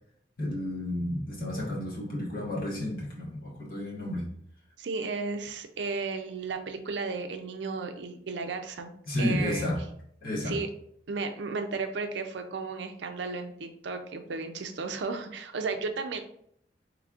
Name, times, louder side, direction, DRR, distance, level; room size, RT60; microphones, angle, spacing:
voice 1, 0.4-4.3 9.1-9.8 10.2-10.6, left 1 dB, 50° left, -4 dB, 1.3 m, -31 dB
voice 2, 4.8-8.9 9.2-9.6 10.4-10.7 11.1-16.2, right 4 dB, 75° right, 6 dB, 0.5 m, -34 dB
4.9 x 3.2 x 2.4 m, 0.67 s
head